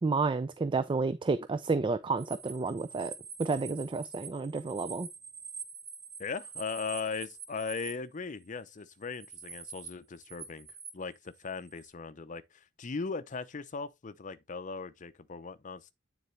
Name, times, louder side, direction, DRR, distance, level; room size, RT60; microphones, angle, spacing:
voice 1, 0.0-3.1 3.4-5.1, right 4 dB, 25° right, 0.3 m, -30 dB
sound 1, 2.2-8.0 8.7-9.9 10.1-11.9, right 6 dB, 60° right, 1.4 m, -46 dB
voice 2, 6.2-10.7 10.9-15.9, left 4 dB, 40° left, 0.6 m, -38 dB
9.3 x 4.0 x 3.2 m
head